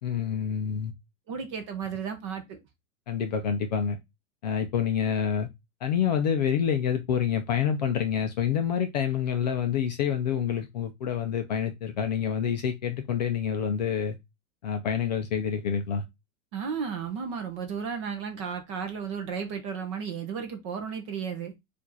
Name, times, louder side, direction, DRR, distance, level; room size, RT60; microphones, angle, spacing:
voice 1, 0.0-0.9 3.1-4.0 4.4-5.5 5.8-14.2 14.6-16.0, left 8 dB, 35° left, 0.4 m, -27 dB
voice 2, 1.3-2.6 16.5-21.5, right 6 dB, 25° right, 0.5 m, -34 dB
4.5 x 2.5 x 4.0 m
supercardioid pair, 170°, 40 cm